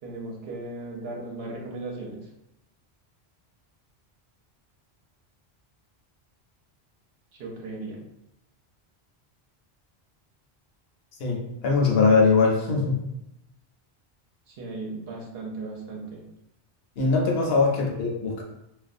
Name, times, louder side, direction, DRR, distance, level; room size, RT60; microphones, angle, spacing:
voice 1, 0.0-2.3 7.4-8.0 14.5-16.2 17.5-17.6, right 2 dB, 75° right, -2 dB, 0.9 m, -36 dB
voice 2, 11.2-13.0 17.0-18.4, left 4 dB, 75° left, 0 dB, 0.8 m, -21 dB
2.4 x 2.2 x 2.5 m, 0.87 s
omnidirectional pair, 1.1 m